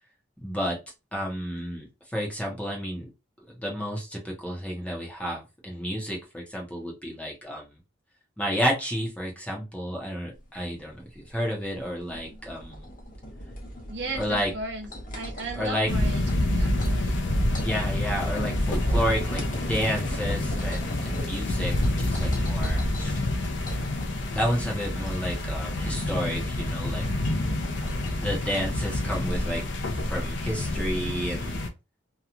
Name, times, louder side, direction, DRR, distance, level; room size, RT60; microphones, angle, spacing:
voice 1, 0.4-0.8 1.1-3.1 3.6-7.7 8.4-12.9 14.2-14.5 15.6-15.9 17.6-23.2 24.3-27.1 28.1-29.6 30.1-31.6, equal, 5° left, -1 dB, 0.8 m, -31 dB
sound 1, 10.3-29.6, equal, 45° left, 0.9 m, -40 dB
voice 2, 13.9-17.3, right 2 dB, 60° right, 3 dB, 0.7 m, -36 dB
sound 2, 15.9-31.7, left 1 dB, 65° left, 0.6 m, -28 dB
2.9 x 2.3 x 2.4 m, 0.26 s
head